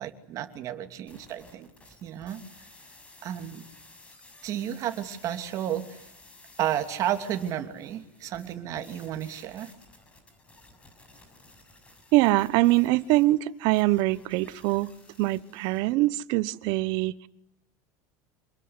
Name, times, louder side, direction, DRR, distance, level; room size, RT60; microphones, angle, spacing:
voice 1, 0.0-1.7 2.0-2.4 3.2-3.6 4.4-5.8 6.6-9.7, right 11 dB, 45° right, 2.9 m, -32 dB
sound 1, 1.1-15.9, left 2 dB, 15° left, 6.4 m, -54 dB
voice 2, 12.1-14.9 15.2-17.3, right 18 dB, 60° right, 1.1 m, -23 dB
27.5 x 21.0 x 9.8 m
cardioid pair, 150°, 8 cm